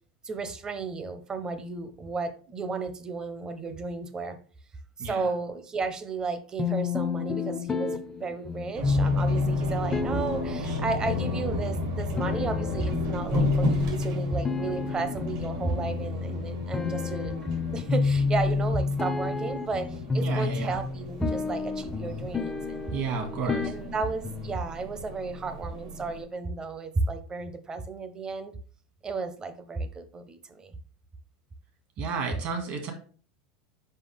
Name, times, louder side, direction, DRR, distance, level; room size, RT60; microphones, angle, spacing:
voice 1, 0.2-4.4 5.0-17.3 17.7-22.8 23.4-28.5 29.0-30.7, right 3 dB, 25° right, 10 dB, 0.9 m, -33 dB
sound 1, 6.6-24.6, left 4 dB, 15° left, 0.6 m, -30 dB
sound 2, 8.7-26.2, equal, 65° right, 2.4 m, -36 dB
voice 2, 20.2-20.8 22.9-23.7 32.0-32.9, right 4 dB, 50° right, 5 dB, 1.9 m, -32 dB
5.6 x 4.9 x 3.5 m, 0.42 s
hypercardioid pair, 110°, 3 cm